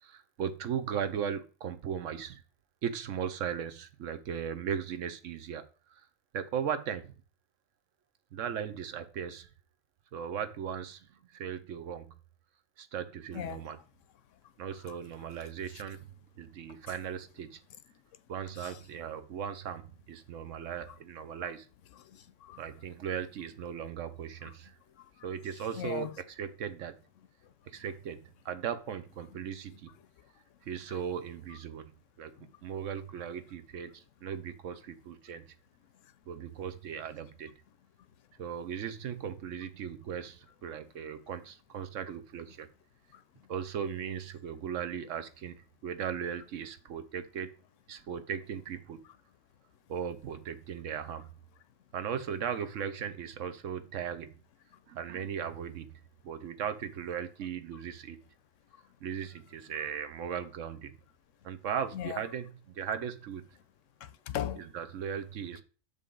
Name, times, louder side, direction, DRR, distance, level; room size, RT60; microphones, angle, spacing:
voice 1, 0.0-2.4 2.8-5.6 5.9-6.0 6.3-7.1 8.3-9.5 10.1-12.0 12.8-13.8 14.6-16.1 16.4-17.6 18.3-19.8 20.1-21.7 22.6-24.8 25.2-26.9 27.7-29.9 30.6-31.9 32.2-32.3 32.6-35.4 36.3-37.5 38.4-42.7 43.5-47.5 47.9-49.0 49.9-51.3 51.9-54.3 54.9-58.2 59.0-60.9 61.4-63.4 64.6-65.6, right 8 dB, 70° right, 1.1 m, -37 dB
voice 2, 13.3-13.7 14.9-15.0 18.5-18.8 22.0-22.6 24.4-24.5 25.0-25.3 25.7-26.1 29.5-29.6 30.9-31.0 32.4-32.5 43.1-43.2 61.9-62.2 64.0-64.7, left 10 dB, 70° left, 0.9 m, -39 dB
6.7 x 5.3 x 3.8 m
omnidirectional pair, 1.4 m